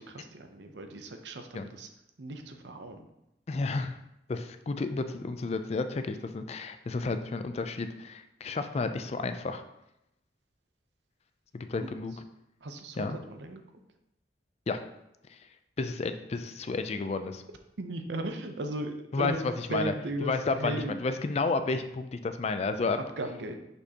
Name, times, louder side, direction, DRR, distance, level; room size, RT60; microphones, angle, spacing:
voice 1, 0.0-1.9 2.2-3.1 11.8-11.9 12.6-13.6 17.8-20.3 20.6-21.0 23.2-23.5, right 2 dB, 70° right, 6 dB, 0.7 m, -36 dB
voice 2, 3.5-3.9 4.3-9.6 11.5-12.1 13.0-13.2 14.7-14.8 15.8-17.4 19.1-19.9 20.2-23.0, left 3 dB, 35° left, 9 dB, 0.3 m, -31 dB
6.4 x 5.3 x 2.8 m, 0.87 s
head